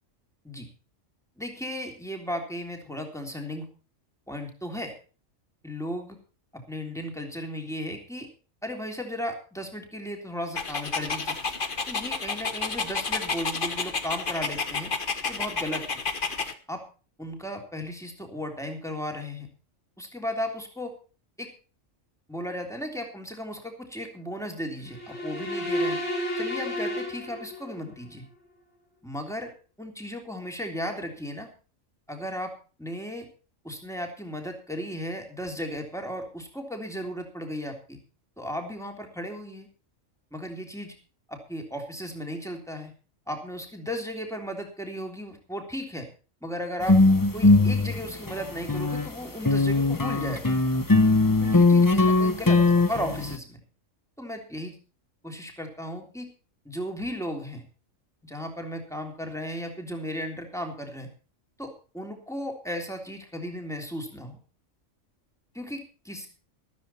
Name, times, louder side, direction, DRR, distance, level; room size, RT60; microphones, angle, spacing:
voice 1, 1.4-3.7 4.3-4.9 5.6-6.2 6.5-8.3 8.6-11.4 11.9-14.9 15.3-16.0 16.7-16.8 17.2-19.5 20.0-20.9 21.4-21.5 22.3-26.0 26.4-28.2 29.0-29.5 29.8-31.5 32.1-32.5 32.8-33.3 33.6-38.0 38.4-39.7 40.3-40.9 41.3-42.9 43.3-46.1 46.4-47.0 47.3-50.5 51.4-53.6 54.2-54.8 55.2-56.3 56.6-57.6 58.2-61.1 61.6-64.4 65.5-66.3, equal, ahead, 3 dB, 3.3 m, -35 dB
Dog, 10.6-16.5, left 4 dB, 45° left, 1.4 m, -30 dB
sound 1, 24.9-27.9, left 1 dB, 60° left, 6.8 m, -31 dB
sound 2, 46.8-49.1 49.4-53.4, left 3 dB, 20° left, 0.7 m, -20 dB
14.0 x 14.0 x 4.3 m, 0.36 s
omnidirectional pair, 1.3 m